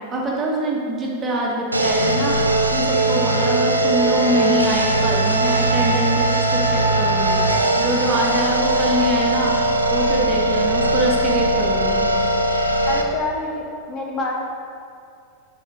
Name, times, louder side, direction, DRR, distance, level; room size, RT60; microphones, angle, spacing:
voice 1, 0.1-2.3 2.7-7.4 7.8-9.6 9.9-12.1, right 1 dB, 25° right, -2 dB, 1.2 m, -24 dB
sound 1, 1.7-13.0, right 1 dB, 85° right, 0.5 m, -19 dB
voice 2, 12.9-14.4, left 2 dB, 30° left, -1 dB, 0.8 m, -26 dB
5.6 x 4.8 x 4.8 m, 2.4 s
figure-of-eight pair, 90°, 0 cm